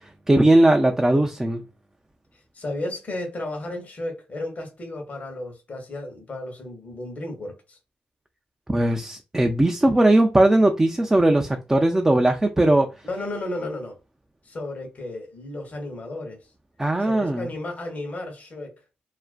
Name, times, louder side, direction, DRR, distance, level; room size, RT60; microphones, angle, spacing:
voice 1, 0.3-1.6 8.7-12.9 16.8-17.5, right 1 dB, 15° right, 0.3 m, -19 dB
voice 2, 2.5-7.8 13.0-13.9 14.4-16.4 17.0-18.8, left 2 dB, 40° left, 0.9 m, -33 dB
2.4 x 2.1 x 2.4 m
supercardioid pair, 65°, 4 cm